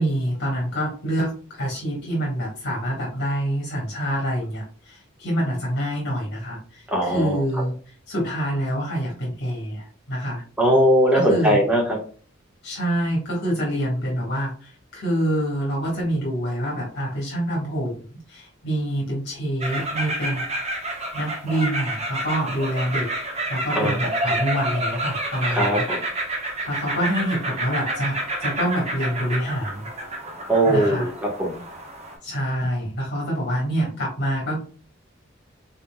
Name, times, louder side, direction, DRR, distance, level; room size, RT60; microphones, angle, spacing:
voice 1, 0.0-7.7 8.1-10.4 11.1-11.6 12.6-20.4 21.1-23.1 23.5-25.8 26.7-29.9 30.6-31.1 32.2-34.6, right 1 dB, 60° left, -3 dB, 1.3 m, -26 dB
voice 2, 6.9-7.4 10.6-12.0 23.7-24.0 25.5-26.0 30.5-31.6, right 1 dB, 5° right, -1 dB, 1.2 m, -20 dB
sound 1, 19.6-32.1, right 1 dB, 35° right, 1.1 m, -29 dB
4.0 x 3.8 x 2.2 m, 0.41 s
head